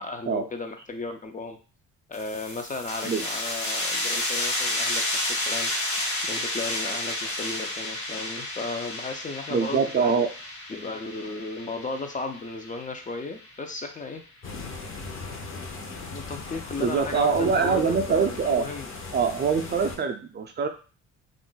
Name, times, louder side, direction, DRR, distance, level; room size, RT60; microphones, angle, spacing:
voice 1, 0.0-1.6 2.1-5.7 6.2-10.1 10.7-14.2 15.9-18.9, left 3 dB, 25° left, 5 dB, 0.4 m, -35 dB
sound 1, 2.1-13.5, left 1 dB, 65° left, 1.3 m, -31 dB
voice 2, 9.5-10.3 16.8-18.7 19.1-20.7, right 5 dB, 35° right, 6 dB, 0.4 m, -24 dB
sound 2, 14.4-20.0, left 3 dB, 45° left, 0.8 m, -38 dB
2.5 x 2.0 x 3.7 m, 0.36 s
cardioid pair, 90°, 30 cm